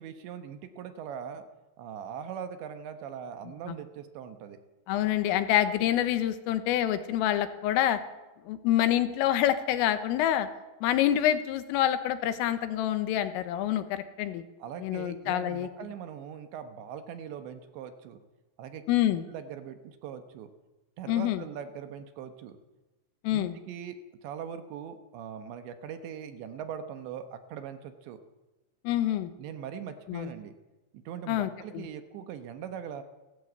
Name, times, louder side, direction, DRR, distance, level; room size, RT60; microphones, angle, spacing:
voice 1, 0.0-1.5 1.8-4.6 14.6-18.2 18.6-18.9 19.2-20.5 21.0-22.6 23.3-28.2 29.4-30.5 30.9-33.0, right 8 dB, 70° right, 9 dB, 3.2 m, -41 dB
voice 2, 4.9-8.0 8.5-10.5 10.8-14.4 14.8-15.7 18.9-19.2 21.1-21.4 23.2-23.6 28.9-29.3 30.1-30.3 31.3-31.9, left 12 dB, 85° left, 10 dB, 3.9 m, -27 dB
30.0 x 14.0 x 8.2 m, 1.1 s
omnidirectional pair, 5.8 m